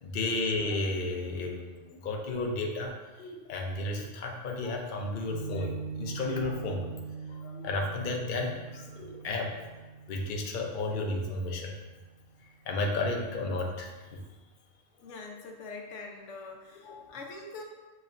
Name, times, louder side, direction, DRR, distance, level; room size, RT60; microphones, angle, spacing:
voice 1, 0.0-2.9 3.2-6.9 7.3-9.5 10.1-11.7 12.7-13.9 16.8-17.0, left 2 dB, 50° left, 1 dB, 0.7 m, -33 dB
Piano, 5.3-11.9, right 5 dB, 75° right, 1.2 m, -42 dB
voice 2, 15.0-17.6, left 3 dB, 85° left, 1 dB, 1.0 m, -44 dB
6.9 x 3.1 x 2.5 m, 1.2 s
omnidirectional pair, 1.2 m